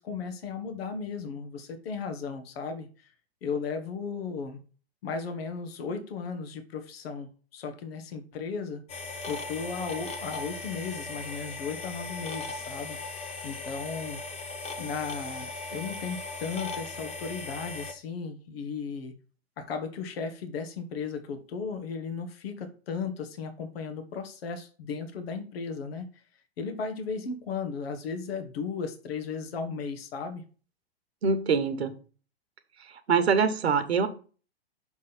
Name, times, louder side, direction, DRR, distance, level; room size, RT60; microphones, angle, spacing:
voice 1, 0.0-3.1 3.4-4.6 5.0-8.8 9.3-13.0 13.4-14.2 14.8-19.2 19.6-26.1 26.6-30.4, left 5 dB, 70° left, 6 dB, 1.4 m, -35 dB
sound 1, 8.9-17.9, left 3 dB, 20° left, 1.0 m, -38 dB
voice 2, 31.2-31.9 33.1-34.1, right 5 dB, 85° right, 10 dB, 1.1 m, -24 dB
6.2 x 3.7 x 5.9 m, 0.38 s
hypercardioid pair, 120°, 31 cm